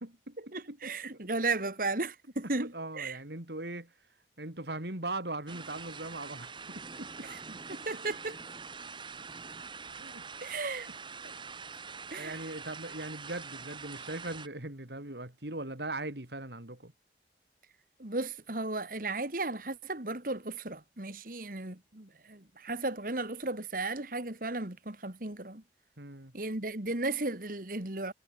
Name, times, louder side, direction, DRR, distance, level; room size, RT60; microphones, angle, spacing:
voice 1, 0.0-1.2 2.6-3.9 4.4-7.3 7.7-7.8 9.9-10.2 12.1-16.9 26.0-26.3, right 2 dB, 70° right, 4.0 m, -40 dB
voice 2, 0.5-3.2 7.2-8.4 10.4-10.9 11.2-11.3 12.1-12.4 18.0-25.6 26.3-28.1, right 3 dB, 50° right, 2.3 m, -35 dB
sound 1, 5.5-14.5, right 5 dB, 25° right, 2.2 m, -45 dB
head